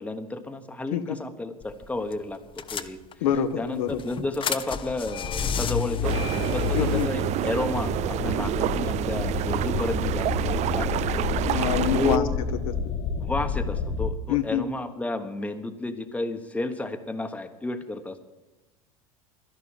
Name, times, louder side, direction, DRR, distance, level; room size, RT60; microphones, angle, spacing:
voice 1, 0.0-2.4 2.7-3.0 3.6-6.2 6.5-10.3 10.7-11.6 11.9-12.3 13.2-18.3, left 2 dB, 5° left, 7 dB, 1.2 m, -32 dB
sound 1, 1.6-1.9 2.1-2.2 2.6-3.4 3.9-7.0, left 7 dB, 30° left, 0.8 m, -29 dB
voice 2, 3.2-4.0 6.8-7.1 11.5-12.3 12.7-12.8 14.3-14.7, left 9 dB, 70° left, 8 dB, 1.1 m, -26 dB
sound 2, 6.0-12.2, right 13 dB, 40° right, 0.5 m, -28 dB
sound 3, 6.2-14.1, left 5 dB, 50° left, 1.1 m, -30 dB
12.0 x 11.5 x 7.5 m, 1.1 s
hypercardioid pair, 85°, 18 cm